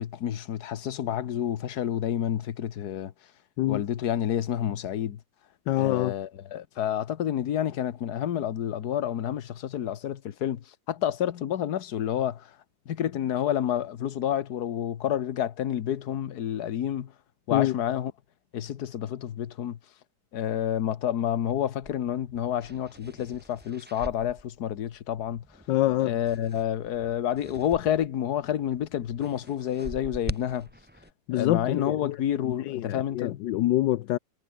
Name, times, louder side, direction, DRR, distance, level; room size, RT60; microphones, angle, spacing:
voice 1, 0.0-3.1 3.7-5.2 5.8-12.5 12.9-17.1 17.5-18.1 18.5-19.8 20.3-25.4 26.0-30.7 31.3-33.4, left 10 dB, 65° left, 1.6 m, -29 dB
voice 2, 5.7-6.1 17.5-17.7 25.7-26.1 31.3-34.2, left 15 dB, 80° left, 1.3 m, -26 dB
sound 1, 21.8-28.2 28.4-31.1, right 1 dB, 5° right, 2.2 m, -43 dB
omnidirectional pair, 1.9 m